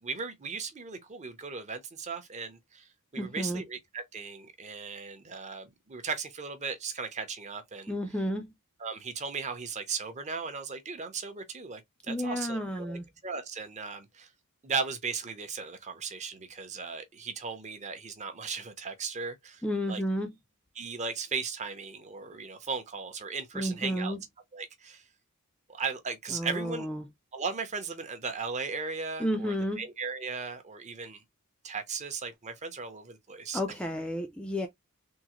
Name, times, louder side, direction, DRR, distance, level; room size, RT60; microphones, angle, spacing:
voice 1, 0.0-7.9 8.8-14.3 14.6-19.6 19.9-20.0 20.8-24.1 24.5-25.0 25.7-26.9 27.3-31.2 31.6-33.6, right 5 dB, 30° right, 0.7 m, -37 dB
voice 2, 3.2-3.6 7.9-8.5 12.1-13.1 19.6-20.3 23.5-24.2 26.3-27.0 29.2-29.8 33.5-34.7, equal, 5° left, 0.3 m, -31 dB
3.6 x 2.0 x 2.9 m
head